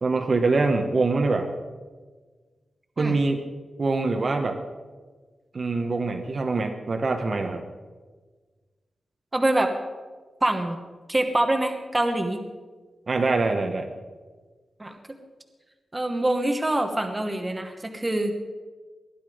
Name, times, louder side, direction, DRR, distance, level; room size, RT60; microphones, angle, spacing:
voice 1, 0.0-1.5 3.0-3.4 3.8-4.6 5.5-7.6 13.1-13.9, right 3 dB, 40° right, 5 dB, 1.1 m, -24 dB
voice 2, 9.3-9.7 10.4-10.8 11.1-12.4 14.8-14.9 15.9-18.3, right 1 dB, 15° right, 5 dB, 1.2 m, -25 dB
20.0 x 12.0 x 5.0 m, 1.4 s
wide cardioid pair, 170°, 0 cm